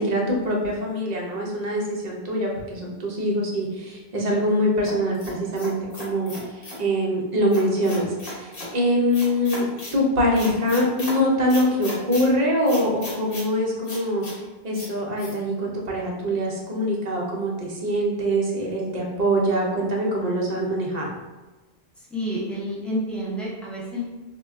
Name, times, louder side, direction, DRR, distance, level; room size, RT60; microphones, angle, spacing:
voice 1, 0.0-9.6 9.9-14.2 14.6-21.1, equal, 50° right, -2 dB, 0.6 m, -24 dB
voice 2, 4.2-4.5 22.0-24.0, equal, ahead, -8 dB, 0.5 m, -30 dB
sound 1, 4.9-6.8 7.5-8.7 9.1-10.0 10.3-11.2 11.5-12.2 12.7-13.5 13.8-14.3 14.7-14.9 15.2-15.3, left 1 dB, 65° left, 1.0 m, -36 dB
2.2 x 2.1 x 3.5 m, 1.2 s
omnidirectional pair, 1.0 m